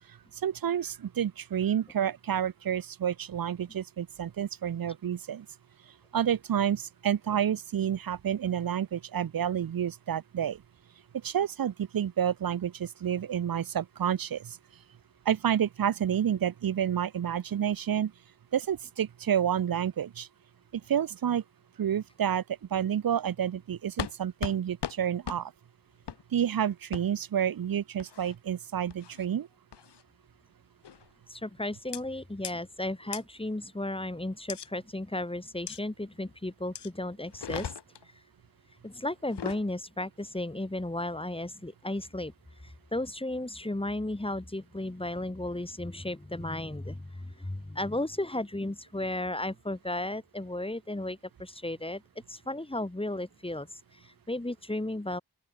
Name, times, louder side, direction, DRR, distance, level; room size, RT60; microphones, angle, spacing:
voice 1, 0.4-5.5 6.1-10.6 11.2-14.6 15.3-18.1 18.5-20.3 20.9-21.4 21.8-22.4 22.7-25.5 26.3-29.5, right 9 dB, 55° right, 0.7 m, -29 dB
sound 1, 24.0-24.1 24.4-24.6 24.8-25.0 25.2-25.4 26.1-26.2 26.9-27.0 28.0-28.3 28.9-29.2 29.7-30.0 30.8-31.1 31.9-32.0 32.4-32.5 33.1-33.2 34.5-34.7 35.7-35.8 36.7-36.9 37.3-38.0 39.2-39.6, left 8 dB, 70° left, 1.1 m, -37 dB
voice 2, 31.3-37.7 38.8-42.3 42.6-52.0 52.3-55.2, left 1 dB, 10° left, 2.8 m, -34 dB
open air
wide cardioid pair, 120°, 42 cm